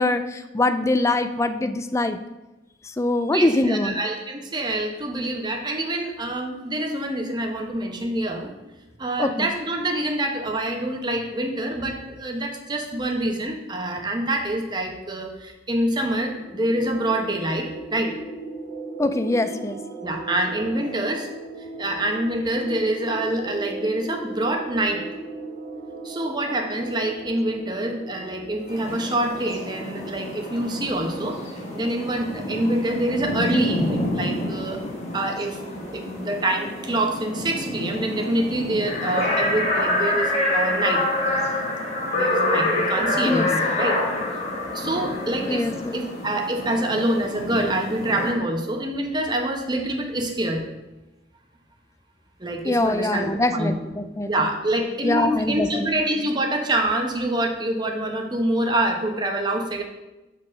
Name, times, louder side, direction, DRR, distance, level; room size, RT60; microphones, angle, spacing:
voice 1, 0.0-2.2 3.0-3.9 9.2-9.5 19.0-19.8 43.3-43.5 45.5-46.0 52.6-54.3 55.0-55.9, left 2 dB, 15° left, 10 dB, 0.4 m, -23 dB
voice 2, 3.3-8.5 9.0-18.1 20.0-21.3 21.8-25.0 26.0-34.8 35.1-41.1 42.1-44.0 44.7-50.6 52.4-53.7 54.3-59.8, right 1 dB, 25° right, 3 dB, 0.9 m, -26 dB
sound 1, 16.1-30.4, right 3 dB, 75° right, 2.1 m, -38 dB
sound 2, 28.7-48.3, left 1 dB, 40° left, 1.5 m, -27 dB
6.5 x 4.1 x 6.4 m, 1.0 s
head